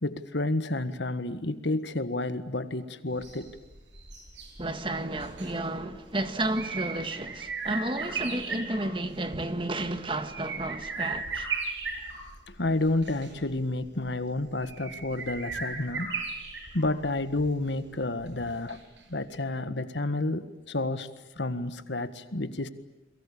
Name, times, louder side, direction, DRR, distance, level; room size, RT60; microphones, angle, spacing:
voice 1, 0.0-3.5 12.5-16.1 16.7-18.8 19.1-21.1 21.3-22.7, left 2 dB, 70° left, 1.6 m, -30 dB
sound 1, 3.1-19.0 19.3-19.4, right 4 dB, 80° right, 7.4 m, -38 dB
voice 2, 4.6-11.5, right 2 dB, 30° right, 1.7 m, -32 dB
29.5 x 23.0 x 8.6 m
head